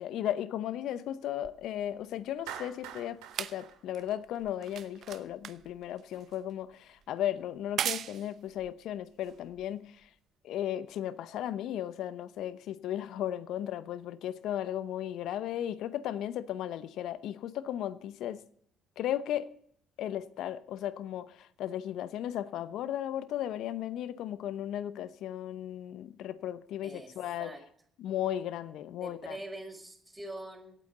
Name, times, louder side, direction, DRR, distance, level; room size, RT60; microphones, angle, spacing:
voice 1, 0.0-10.1 10.4-18.4 19.0-19.5 20.0-27.5 28.0-29.4, left 11 dB, 65° left, 0.8 m, -35 dB
sound 1, 1.4-10.1 10.9-11.0, right 10 dB, 60° right, 0.8 m, -41 dB
Clapping, 2.5-4.8, right 10 dB, 80° right, 2.0 m, -45 dB
voice 2, 26.8-27.1 27.4-27.6 29.0-30.8, right 1 dB, 10° right, 5.0 m, -43 dB
25.0 x 8.8 x 4.0 m
hypercardioid pair, 50°, 0 cm